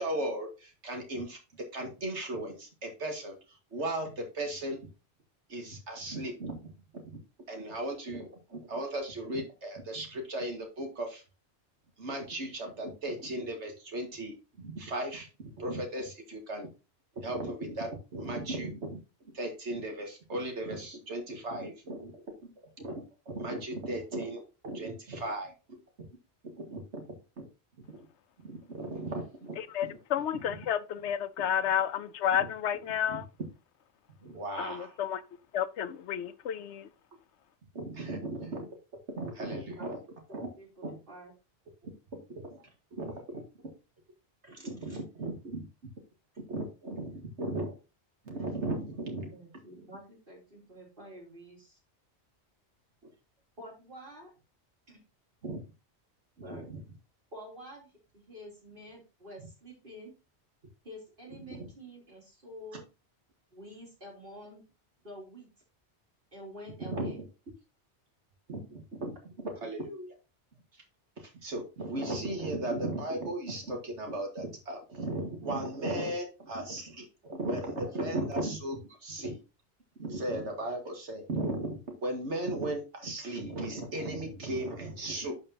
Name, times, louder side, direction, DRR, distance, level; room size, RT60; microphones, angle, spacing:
voice 1, 0.0-1.4 1.7-4.8 5.5-6.6 6.9-7.0 7.5-11.2 12.0-16.7 17.2-19.0 19.3-22.5 22.8-25.8 26.4-27.0 27.4-27.5 28.4-29.6 33.1-33.2 34.2-34.9 37.7-38.7 39.1-40.0 40.3-40.5 40.8-41.0 41.8-42.6 42.9-43.4 44.6-45.7 46.5-47.8 48.3-49.3 55.4-55.6 61.5-61.7 66.8-67.2 68.5-69.1 69.4-70.1 71.2-79.4 80.0-85.4, right 1 dB, 80° right, 2.1 m, -36 dB
voice 2, 29.6-33.2 34.6-35.2 35.5-36.9, left 9 dB, 80° left, 0.9 m, -31 dB
voice 3, 40.3-41.3 42.6-42.7 44.4-45.0 49.3-51.8 53.6-54.3 54.9-55.0 56.4-56.7 57.3-60.1 60.8-62.8 63.5-64.6 65.0-65.5 66.3-67.2, equal, 50° right, 3.5 m, -48 dB
11.0 x 5.1 x 2.8 m
omnidirectional pair, 1.2 m